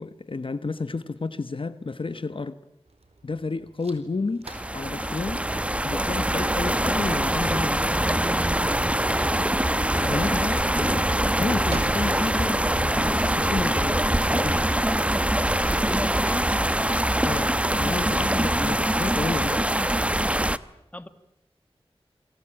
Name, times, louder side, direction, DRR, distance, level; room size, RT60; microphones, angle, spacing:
voice 1, 0.0-2.6 3.2-4.5 4.7-5.5 5.8-8.1 10.0-14.7 17.2-19.7, left 3 dB, 55° left, 1.1 m, -31 dB
sound 1, 2.9-15.2, right 2 dB, 90° right, 4.5 m, -47 dB
sound 2, 4.4-20.6, right 1 dB, 10° right, 1.0 m, -24 dB
voice 2, 15.6-16.5 17.8-18.0 20.9-21.1, left 1 dB, 15° left, 1.8 m, -36 dB
28.5 x 22.5 x 8.9 m
wide cardioid pair, 80°, 10 cm